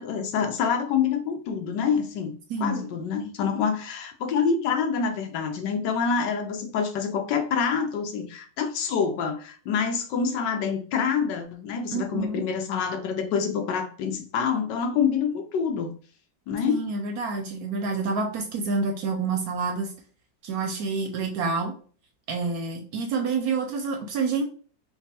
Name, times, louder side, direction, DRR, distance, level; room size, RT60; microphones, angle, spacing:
voice 1, 0.0-2.3 2.6-15.9 16.5-16.8, left 6 dB, 75° left, 5 dB, 1.3 m, -26 dB
voice 2, 2.5-2.8 11.9-12.4 16.5-19.9 20.4-21.7 22.3-24.4, right 4 dB, 70° right, 4 dB, 1.0 m, -28 dB
3.5 x 2.4 x 4.1 m, 0.42 s
omnidirectional pair, 1.9 m